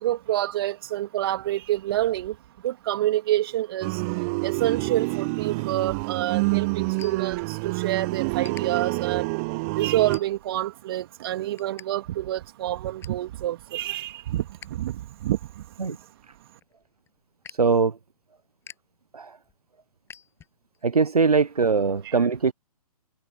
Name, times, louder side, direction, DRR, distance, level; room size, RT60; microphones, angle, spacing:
voice 1, 0.0-2.3 2.6-3.9 4.4-9.3 9.8-14.4 14.7-14.9 15.2-15.4, right 14 dB, 40° right, 2.9 m, -27 dB
sound 1, 3.8-10.2, right 29 dB, 20° right, 0.7 m, -27 dB
sound 2, 5.8-7.9 8.4-8.6 9.2-9.4 10.1-10.7 11.1-11.9 12.2-12.3 12.6-13.3 13.7-14.8 15.1-20.8, left 8 dB, 10° left, 7.4 m, -49 dB
voice 2, 17.6-18.0 19.1-19.4 20.8-22.5, right 4 dB, 70° right, 1.1 m, -21 dB
figure-of-eight pair, 130°, 20 cm